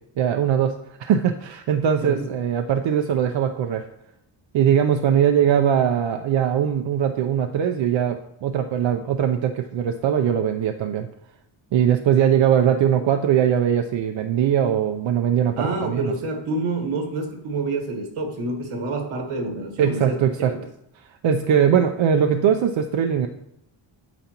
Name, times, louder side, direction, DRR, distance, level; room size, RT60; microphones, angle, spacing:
voice 1, 0.2-0.7 1.0-3.8 4.5-11.1 11.7-16.1 19.8-20.5 21.2-23.3, right 8 dB, 65° right, 5 dB, 0.6 m, -21 dB
voice 2, 15.6-20.2 20.5-20.6, right 2 dB, 80° right, 3 dB, 1.6 m, -27 dB
9.1 x 6.9 x 2.9 m, 0.78 s
cardioid pair, 80°, 49 cm